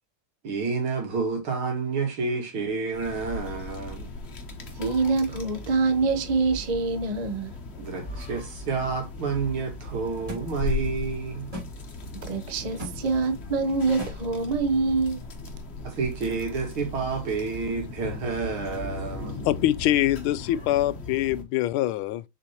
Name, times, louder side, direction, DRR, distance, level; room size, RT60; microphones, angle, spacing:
voice 1, 0.4-4.1 7.8-11.5 12.6-12.7 15.8-19.5, right 4 dB, 80° right, 2.8 m, -29 dB
sound 1, 2.9-21.4, left 2 dB, 35° left, 1.2 m, -37 dB
voice 2, 4.8-7.6 12.2-15.2, right 4 dB, 55° right, 0.4 m, -25 dB
sound 2, 10.3-10.5 11.5-11.7 12.8-13.0 14.0-14.1, equal, 15° right, 3.5 m, -35 dB
voice 3, 19.4-22.2, left 14 dB, 85° left, 1.4 m, -24 dB
6.9 x 5.1 x 2.8 m
omnidirectional pair, 2.2 m